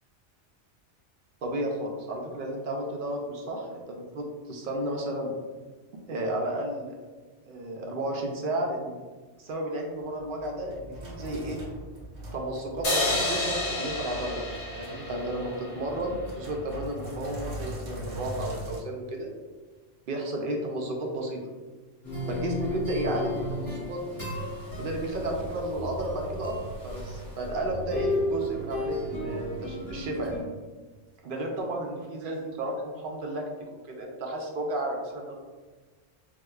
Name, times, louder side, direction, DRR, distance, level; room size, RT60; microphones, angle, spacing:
voice 1, 1.4-5.3 6.1-7.0 7.4-9.0 9.4-11.6 12.3-14.4 14.8-19.3 20.1-21.4 22.3-24.3 24.8-26.6 26.8-30.4 31.2-33.4 33.9-35.3, right 1 dB, 60° right, 0 dB, 0.6 m, -32 dB
Sink (filling or washing), 10.0-18.8, equal, 90° right, 1.2 m, -41 dB
sound 1, 12.8-16.2, left 2 dB, 75° left, 1.3 m, -30 dB
sound 2, 22.0-30.4, left 1 dB, 55° left, 1.9 m, -34 dB
4.7 x 2.1 x 2.3 m, 1.4 s
omnidirectional pair, 1.2 m